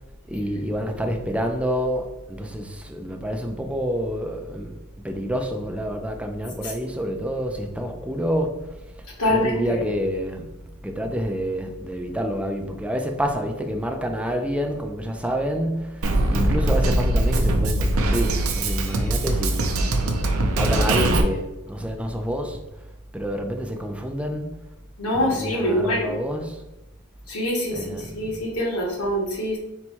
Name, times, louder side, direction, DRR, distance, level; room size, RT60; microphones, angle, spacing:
voice 1, 0.3-8.8 9.3-10.5 10.8-19.7 20.5-22.6 23.1-24.7 25.1-26.6 27.7-28.4, equal, 5° right, 0.4 m, -28 dB
voice 2, 9.2-9.8 25.0-26.2 27.3-29.6, equal, 80° left, 1.2 m, -24 dB
Drum kit, 16.0-21.2, right 1 dB, 70° right, 0.5 m, -21 dB
4.1 x 2.2 x 4.4 m
head